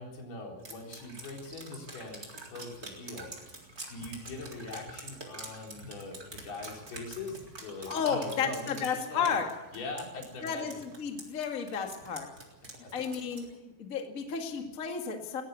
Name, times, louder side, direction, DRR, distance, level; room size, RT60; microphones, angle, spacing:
voice 1, 0.0-3.3 3.9-9.4 9.7-10.8 12.8-12.9, left 2 dB, 80° left, 1 dB, 5.9 m, -41 dB
Drip, 0.6-13.5, right 2 dB, 25° right, 3.8 m, -46 dB
voice 2, 7.9-9.5 10.4-12.3 12.9-13.5 13.8-15.4, left 6 dB, 30° left, 3 dB, 1.8 m, -32 dB
19.0 x 17.0 x 8.4 m, 1.0 s
omnidirectional pair, 4.4 m